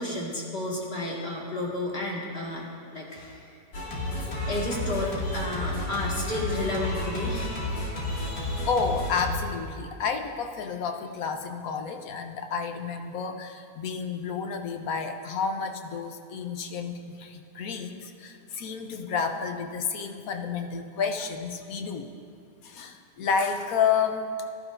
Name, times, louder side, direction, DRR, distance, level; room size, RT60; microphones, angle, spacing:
voice 1, 0.0-2.7 2.9-3.6 4.5-7.5, left 2 dB, 35° left, -3 dB, 2.1 m, -31 dB
Singing, 3.7-9.4, left 1 dB, 80° left, 2.4 m, -31 dB
voice 2, 8.7-22.1 22.6-24.4, left 6 dB, 65° left, 5 dB, 1.1 m, -30 dB
18.0 x 12.0 x 2.6 m, 2.3 s
omnidirectional pair, 1.8 m